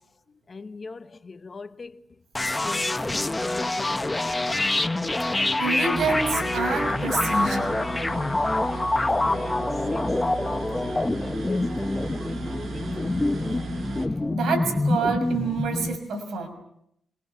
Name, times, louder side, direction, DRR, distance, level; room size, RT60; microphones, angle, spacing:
voice 1, 0.5-1.0 1.3-1.9 2.6-2.8 3.2-4.2 9.0-9.5 9.9-10.0 10.4-10.6 11.5-12.7 13.2-13.6, left 4 dB, 40° left, 1.1 m, -39 dB
sound 1, 2.3-16.0, left 2 dB, 20° left, 1.2 m, -26 dB
voice 2, 5.3-7.8 14.3-16.5, right 4 dB, 80° right, 6.3 m, -28 dB
sound 2, 6.0-14.1, right 5 dB, 60° right, 4.9 m, -37 dB
26.0 x 24.0 x 7.2 m
cardioid pair, 75°, 0 cm